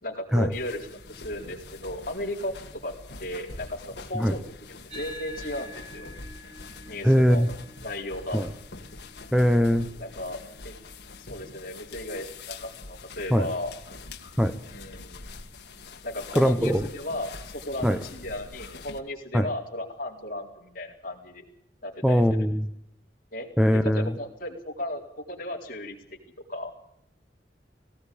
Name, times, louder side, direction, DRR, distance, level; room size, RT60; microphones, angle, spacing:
voice 1, 0.0-2.5 2.8-2.9 3.2-6.1 6.9-7.4 7.8-8.4 10.0-10.4 10.6-10.8 11.3-13.7 14.7-15.2 16.0-21.4 21.8-22.2 23.3-23.5 23.7-25.0 25.3-26.0 26.5-26.7, left 1 dB, 50° left, -1 dB, 4.3 m, -35 dB
sound 1, 0.5-19.0, left 3 dB, 70° left, 1.8 m, -44 dB
sound 2, 4.9-13.6, left 1 dB, 35° right, 5.6 m, -48 dB
voice 2, 7.0-7.5 8.3-8.5 9.3-9.9 13.3-13.5 14.4-14.6 16.3-16.9 17.8-18.0 19.3-19.5 22.0-22.7 23.6-24.1, equal, 5° right, 8 dB, 0.8 m, -21 dB
18.0 x 17.5 x 8.5 m, 0.74 s
head